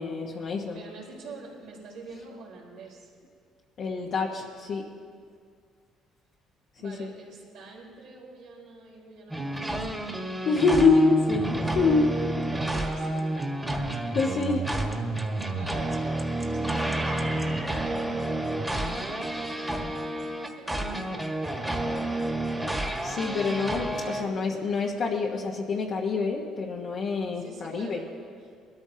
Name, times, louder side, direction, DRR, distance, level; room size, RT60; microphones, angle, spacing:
voice 1, 0.0-0.8 3.8-4.8 6.8-7.1 10.4-12.1 14.1-14.7 16.7-16.9 23.0-28.0, left 4 dB, 60° left, -3 dB, 1.3 m, -26 dB
voice 2, 0.7-3.1 6.8-10.1 12.4-13.8 15.4-21.2 23.8-24.4 27.3-28.6, right 4 dB, 85° right, -4 dB, 4.0 m, -46 dB
sound 1, 9.3-24.2, right 1 dB, 5° right, 1.7 m, -30 dB
20.5 x 13.5 x 2.9 m, 2.1 s
supercardioid pair, 85°, 0 cm